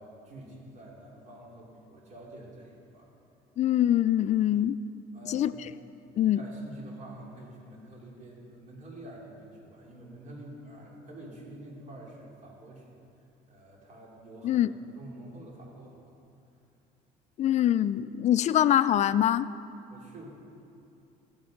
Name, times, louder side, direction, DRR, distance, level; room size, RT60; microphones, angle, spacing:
voice 1, 0.0-3.1 5.1-5.6 6.2-12.8 13.5-14.6 14.9-16.1 19.9-20.3, right 1 dB, 45° right, -3 dB, 3.0 m, -47 dB
voice 2, 3.6-4.8 5.3-5.5 6.2-6.4 14.4-14.7 17.4-19.5, left 11 dB, 45° left, 13 dB, 0.4 m, -24 dB
13.5 x 8.5 x 5.2 m, 2.7 s
cardioid pair, 110°, 17 cm